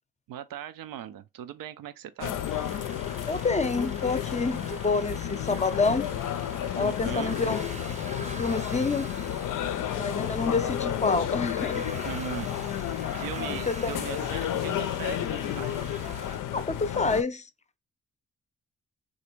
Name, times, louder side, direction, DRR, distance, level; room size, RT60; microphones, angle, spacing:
voice 1, 0.3-2.4 6.8-7.4 12.0-12.5 13.1-15.7, right 10 dB, 75° right, 0.5 m, -39 dB
sound 1, 2.2-17.2, left 11 dB, 65° left, 0.5 m, -31 dB
sound 2, 2.3-16.4, right 3 dB, 20° right, 0.7 m, -43 dB
voice 2, 3.3-6.1 6.7-7.7 8.2-9.1 10.0-11.8 13.7-13.9 16.5-17.4, left 4 dB, 20° left, 0.6 m, -28 dB
3.2 x 2.6 x 3.0 m
supercardioid pair, 45°, 34 cm